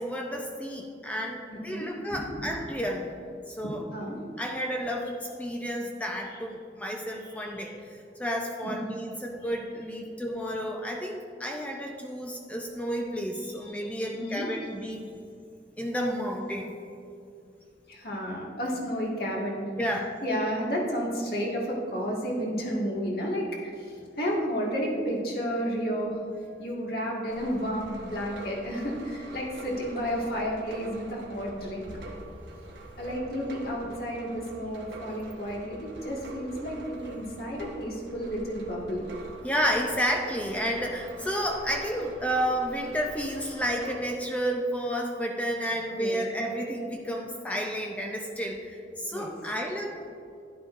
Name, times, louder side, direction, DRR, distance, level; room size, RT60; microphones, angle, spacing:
voice 1, 0.0-3.1 3.5-3.8 4.4-15.0 15.8-16.7 19.8-20.1 39.4-50.0, equal, 10° left, 0 dB, 0.6 m, -31 dB
voice 2, 1.7-2.5 3.9-4.2 6.3-6.4 7.2-7.7 8.6-8.9 13.4-14.7 17.9-26.2 26.6-31.9 33.0-39.0 45.9-46.2 49.1-49.3, equal, 55° left, -3 dB, 1.9 m, -32 dB
sound 1, 27.3-44.0, right 1 dB, 90° right, 1.2 m, -44 dB
11.0 x 11.0 x 2.6 m, 2.5 s
head